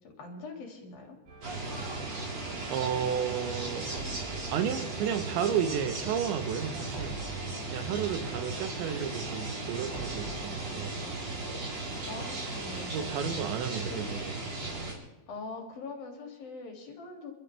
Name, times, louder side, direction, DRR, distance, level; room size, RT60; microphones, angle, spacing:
voice 1, 0.0-1.2 12.0-13.2 13.9-14.0 15.3-17.3, left 3 dB, 55° left, 1 dB, 4.1 m, -43 dB
sound 1, 1.3-11.6, right 3 dB, 65° right, 5.5 m, -47 dB
sound 2, 1.4-14.9, right 2 dB, 35° right, 4.9 m, -36 dB
voice 2, 2.7-3.9 4.5-7.2 7.7-11.1 12.9-14.3, right 8 dB, 80° right, 8 dB, 3.3 m, -32 dB
29.0 x 13.5 x 3.4 m, 0.99 s
omnidirectional pair, 5.3 m